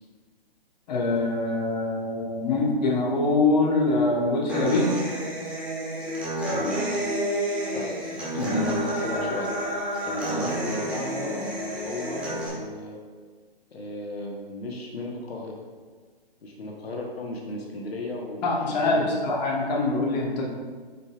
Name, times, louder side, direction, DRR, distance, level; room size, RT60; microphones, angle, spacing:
voice 1, 0.9-5.0 8.3-8.6 18.4-20.5, left 2 dB, 45° left, -2 dB, 1.3 m, -24 dB
Human voice / Acoustic guitar, 4.5-12.5, right 1 dB, 5° right, 1.2 m, -30 dB
voice 2, 6.5-7.0 7.7-7.9 8.3-9.5 10.0-13.0 13.7-15.6 16.4-19.2, left 1 dB, 80° left, 0 dB, 1.2 m, -34 dB
8.0 x 5.1 x 2.4 m, 1.5 s
hypercardioid pair, 140°, 31 cm